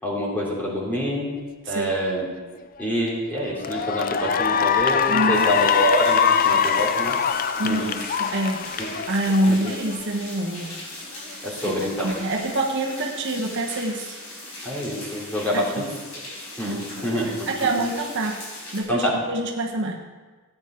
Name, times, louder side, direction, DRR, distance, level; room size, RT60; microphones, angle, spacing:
voice 1, 0.0-1.3 1.7-2.3 2.8-7.2 7.6-7.8 8.8-8.9 9.5-9.6 11.4-12.1 14.6-15.8 16.6-17.5 18.9-19.2, equal, 10° left, -5 dB, 3.1 m, -26 dB
voice 2, 1.6-2.0 5.1-5.5 7.6-8.7 9.1-10.7 11.6-11.7 12.0-14.2 15.5-15.9 16.6-16.9 17.2-18.4 18.7-20.0, right 1 dB, 55° right, 1 dB, 1.1 m, -26 dB
Cheering / Applause, 2.8-3.1 3.5-10.1, left 7 dB, 40° left, 0.4 m, -23 dB
sound 1, 5.3-18.8, left 1 dB, 70° left, 4.7 m, -39 dB
15.5 x 9.1 x 4.4 m, 1.4 s
head